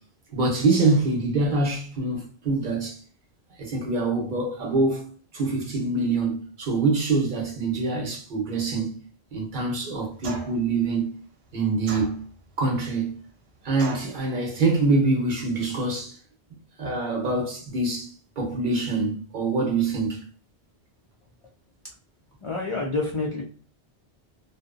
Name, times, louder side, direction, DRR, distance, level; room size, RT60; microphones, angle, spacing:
voice 1, 0.3-3.0 3.6-5.0 5.3-9.0 9.3-11.1 11.5-12.2 12.6-13.1 13.6-16.2 16.8-20.2, right 3 dB, 55° right, 0.8 m, -25 dB
sound 1, 10.2-10.7 11.9-12.5 13.8-14.2, right 3 dB, 85° right, 0.8 m, -36 dB
voice 2, 22.4-23.4, left 3 dB, 55° left, 0.3 m, -28 dB
2.6 x 2.0 x 2.4 m
omnidirectional pair, 1.1 m